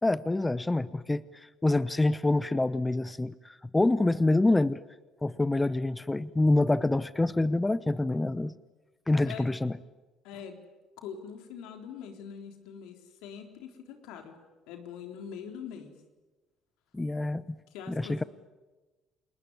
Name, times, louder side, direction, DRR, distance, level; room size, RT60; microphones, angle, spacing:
voice 1, 0.0-4.8 5.2-8.5 9.1-9.7 16.9-17.4 17.9-18.2, left 2 dB, 15° left, 16 dB, 0.8 m, -26 dB
voice 2, 10.2-10.6 11.0-14.4 14.7-15.9 17.7-18.3, left 7 dB, 80° left, 5 dB, 3.8 m, -43 dB
29.5 x 20.5 x 9.8 m, 1.2 s
supercardioid pair, 70°, 0 cm